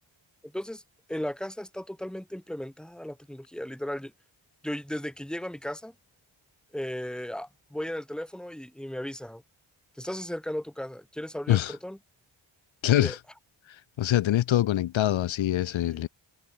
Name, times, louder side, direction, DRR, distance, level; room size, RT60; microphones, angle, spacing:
voice 1, 0.4-0.8 1.1-4.1 4.6-5.9 6.7-9.4 10.0-12.0 12.9-13.2 15.8-16.1, left 1 dB, ahead, 1.5 m, -36 dB
voice 2, 12.8-13.2 14.0-16.1, left 13 dB, 70° left, 0.6 m, -24 dB
cardioid pair, 50°, 48 cm